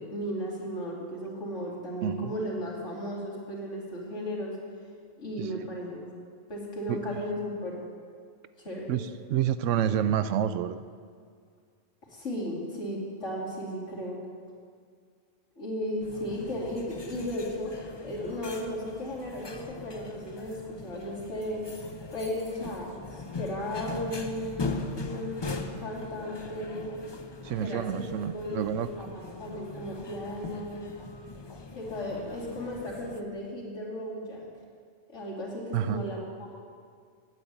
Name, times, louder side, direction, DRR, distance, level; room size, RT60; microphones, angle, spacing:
voice 1, 0.0-4.5 5.2-6.0 6.5-7.8 8.6-8.9 12.1-14.2 15.6-17.7 18.0-21.6 22.1-25.5 25.8-26.9 27.6-28.0 28.3-29.1 29.4-30.9 31.7-34.5 35.1-36.5, equal, 75° left, -5 dB, 3.0 m, -35 dB
voice 2, 2.0-2.3 5.4-5.7 6.9-7.2 8.9-10.8 27.4-28.9 35.7-36.1, right 10 dB, 85° right, 13 dB, 0.9 m, -29 dB
sound 1, 16.0-33.2, left 3 dB, 30° left, 0.5 m, -41 dB
9.4 x 8.6 x 8.0 m, 2.1 s
omnidirectional pair, 1.3 m